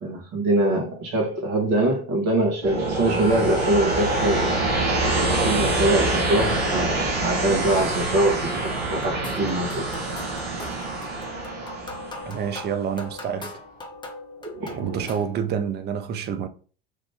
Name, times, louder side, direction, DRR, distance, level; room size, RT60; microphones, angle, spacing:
voice 1, 0.0-4.5 5.1-9.9 14.6-14.8, right 1 dB, 55° right, 1.5 m, -23 dB
sound 1, 2.6-13.3 14.4-15.0, right 2 dB, 90° right, 0.9 m, -26 dB
Cheering / Crowd, 3.2-9.9, left 5 dB, 80° left, 0.6 m, -40 dB
sound 2, 9.0-15.4, left 2 dB, 15° left, 0.7 m, -40 dB
voice 2, 12.3-13.6 14.8-16.5, right 7 dB, 35° right, 0.5 m, -28 dB
3.1 x 2.6 x 3.4 m
hypercardioid pair, 70°, 30 cm